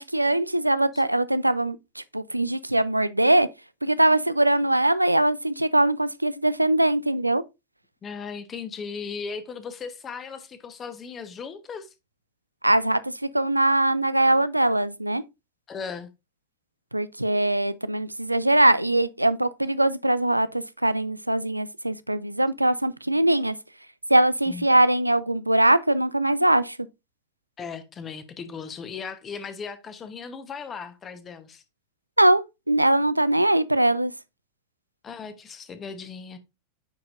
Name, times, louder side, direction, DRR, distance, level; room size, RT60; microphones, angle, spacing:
voice 1, 0.0-3.5 3.8-7.4 12.6-15.2 16.9-23.6 24.1-26.8 32.2-34.1, right 1 dB, 85° right, 0.4 m, -22 dB
voice 2, 8.0-11.9 15.7-16.1 24.5-24.6 27.6-31.6 35.0-36.4, left 5 dB, 25° left, 1.0 m, -37 dB
9.5 x 4.4 x 2.5 m
figure-of-eight pair, 90°, 0 cm